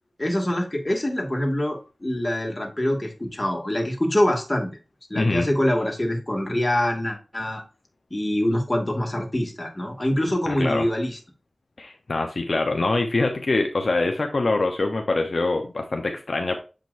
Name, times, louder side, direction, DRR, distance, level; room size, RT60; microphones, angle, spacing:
voice 1, 0.2-4.7 5.1-7.6 8.1-11.2, left 1 dB, 30° left, 1 dB, 2.4 m, -24 dB
voice 2, 5.1-5.5 10.5-10.9 11.8-16.6, left 2 dB, 70° left, 4 dB, 0.9 m, -24 dB
7.6 x 5.2 x 2.7 m, 0.33 s
wide cardioid pair, 45°, 0 cm